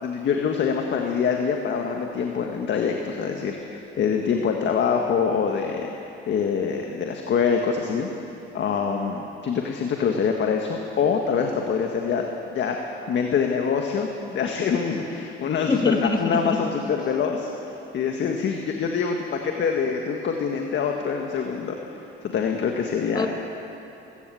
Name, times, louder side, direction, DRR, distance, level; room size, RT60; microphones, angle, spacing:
voice 1, 0.0-5.9 6.3-8.1 8.5-17.5 17.9-23.3, left 6 dB, 60° left, 2 dB, 1.8 m, -25 dB
voice 2, 15.7-16.6 23.1-23.3, left 3 dB, 20° left, 5 dB, 1.7 m, -24 dB
21.0 x 16.5 x 7.8 m, 2.9 s
cardioid pair, 100°, 21 cm